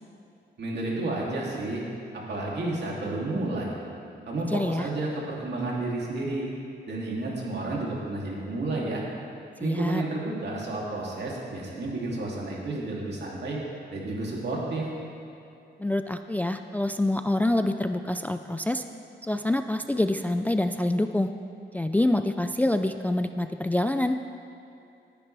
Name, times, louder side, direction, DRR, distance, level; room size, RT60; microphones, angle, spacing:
voice 1, 0.6-1.8 2.1-3.7 4.3-6.5 6.9-9.0 9.6-13.6 13.9-14.9, right 2 dB, 65° right, -4 dB, 2.8 m, -31 dB
voice 2, 4.4-4.9 9.6-10.0 15.8-18.8 19.2-21.3 21.7-24.2, left 1 dB, 10° left, 8 dB, 0.3 m, -26 dB
19.5 x 10.0 x 3.4 m, 2.6 s
cardioid pair, 105°, 19 cm